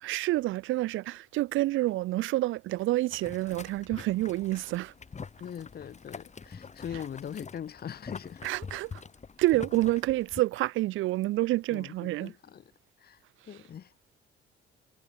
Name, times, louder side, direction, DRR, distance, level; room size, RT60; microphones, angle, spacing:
voice 1, 0.0-4.9 8.4-9.0 9.4-12.3, right 17 dB, 80° right, 0.5 m, -28 dB
Boiling, 3.1-10.4, left 5 dB, 35° left, 5.4 m, -45 dB
voice 2, 5.4-8.4 11.7-12.7 13.0-13.9, left 8 dB, 55° left, 1.5 m, -41 dB
cardioid pair, 90°, 20 cm